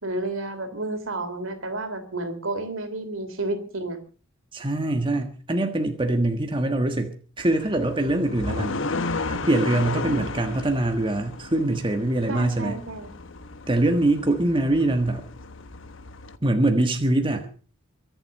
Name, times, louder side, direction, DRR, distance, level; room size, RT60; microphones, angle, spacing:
voice 1, 0.0-4.0 10.0-10.2 12.3-13.1, right 2 dB, 65° right, 9 dB, 3.2 m, -31 dB
voice 2, 4.5-8.8 9.3-12.8 13.7-15.2 16.4-17.5, right 1 dB, 25° right, 5 dB, 1.5 m, -23 dB
sound 1, 7.4-16.4, left 3 dB, 65° left, 1.2 m, -34 dB
23.0 x 7.9 x 6.5 m, 0.41 s
head